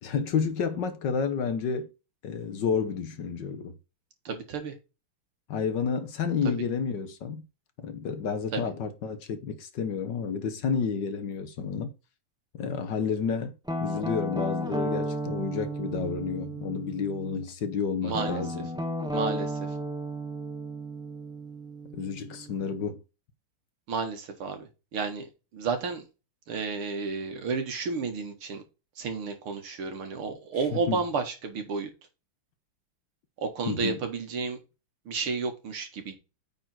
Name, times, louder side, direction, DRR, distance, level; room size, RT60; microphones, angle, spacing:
voice 1, 0.0-1.9 2.2-3.8 5.5-7.4 7.8-11.9 12.5-13.5 13.8-18.7 21.9-23.0 30.7-31.0 33.7-34.0, left 6 dB, 60° left, 1.5 m, -30 dB
voice 2, 4.3-4.7 8.5-8.6 18.0-18.4 19.1-19.5 23.9-26.0 26.5-28.6 29.0-31.9 33.4-34.6 35.1-36.2, right 4 dB, 80° right, 2.6 m, -32 dB
Guitar, 13.7-17.4 18.1-22.9, right 1 dB, 5° right, 1.0 m, -34 dB
8.9 x 4.3 x 4.4 m
omnidirectional pair, 2.4 m